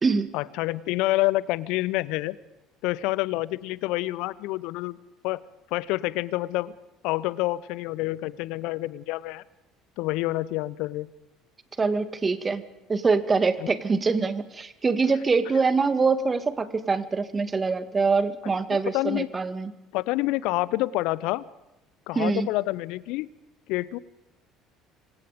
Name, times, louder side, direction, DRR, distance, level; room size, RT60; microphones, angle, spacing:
voice 1, 0.3-2.4 2.8-5.0 5.2-5.4 5.7-6.7 7.0-9.4 10.0-11.1 13.6-13.7 18.7-19.3 19.9-21.4 22.1-23.3 23.7-24.0, left 18 dB, 65° left, 21 dB, 0.9 m, -27 dB
voice 2, 11.8-12.6 12.9-19.7 22.1-22.5, right 4 dB, 25° right, 12 dB, 2.0 m, -24 dB
25.5 x 25.5 x 5.3 m, 0.98 s
figure-of-eight pair, 60°, 0 cm